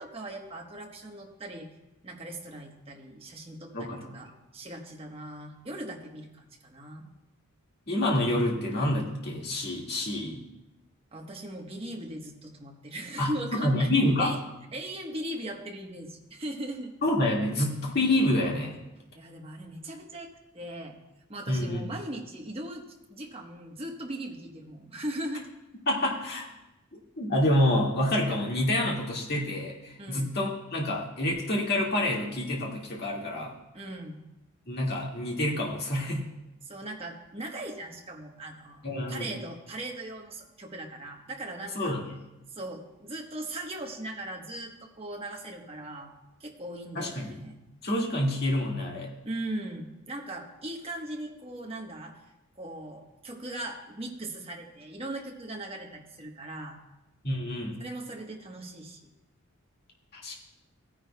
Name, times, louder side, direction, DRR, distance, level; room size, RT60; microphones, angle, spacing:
voice 1, 0.0-1.7 2.0-7.0 11.1-13.9 14.2-14.4 14.7-16.9 19.1-21.0 21.3-22.8 23.1-25.5 30.0-30.3 33.7-34.2 36.6-38.8 39.1-42.0 42.5-47.6 49.2-52.2 52.6-56.8 57.8-59.1, right 1 dB, 25° right, 1 dB, 1.1 m, -39 dB
voice 2, 3.7-4.1 7.9-10.4 13.2-14.3 17.0-18.7 21.5-21.9 25.9-26.5 26.9-33.5 34.7-36.3 38.8-39.3 41.8-42.0 46.9-47.4 47.8-49.1 57.2-57.8 60.1-60.3, left 1 dB, 45° left, -3 dB, 1.9 m, -27 dB
16.5 x 9.9 x 2.2 m, 0.96 s
head